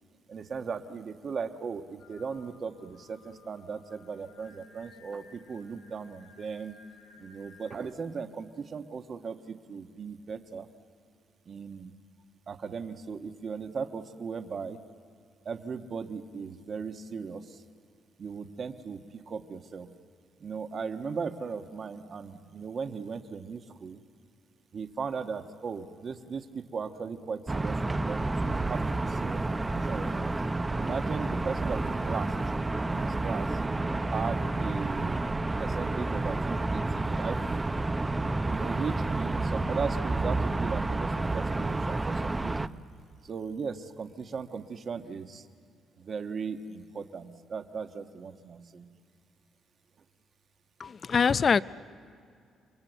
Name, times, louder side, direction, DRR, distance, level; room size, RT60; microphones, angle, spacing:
voice 1, 0.3-6.7 7.2-10.7 11.5-11.9 12.5-14.8 15.4-17.6 18.2-19.9 20.4-24.0 24.7-30.3 30.8-32.3 32.9-33.6 34.1-35.3 35.6-37.4 38.4-42.7 43.2-45.4 46.0-48.9, right 5 dB, 50° right, 1.4 m, -37 dB
Singing, 2.0-7.8, left 4 dB, 80° left, 5.3 m, -57 dB
sound 1, 27.5-42.7, right 2 dB, 20° right, 0.7 m, -30 dB
voice 2, 50.8-51.6, left 6 dB, 45° left, 0.5 m, -24 dB
28.0 x 22.5 x 8.1 m
cardioid pair, 90°, 0 cm